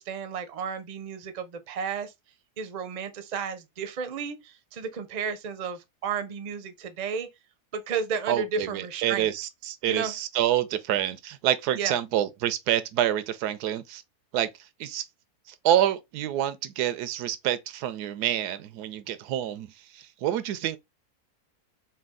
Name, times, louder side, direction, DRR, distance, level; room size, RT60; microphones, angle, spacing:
voice 1, 0.0-2.1 2.6-7.3 7.7-9.3 9.9-10.2 11.7-11.9, right 6 dB, 50° right, 0.5 m, -32 dB
voice 2, 8.3-14.0 14.3-14.5 14.8-15.0 15.6-20.8, right 11 dB, 90° right, 1.1 m, -27 dB
4.3 x 2.3 x 3.6 m
omnidirectional pair, 1.6 m